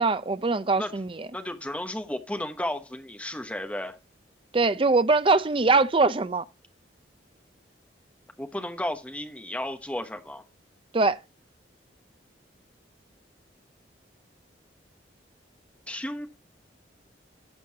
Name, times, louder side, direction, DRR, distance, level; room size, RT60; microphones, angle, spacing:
voice 1, 0.0-1.3 4.5-6.4 10.9-11.2, right 3 dB, 30° right, 0.5 m, -22 dB
voice 2, 1.3-4.0 8.4-10.4 15.9-16.3, left 1 dB, 5° left, 1.0 m, -33 dB
12.0 x 6.9 x 2.8 m
head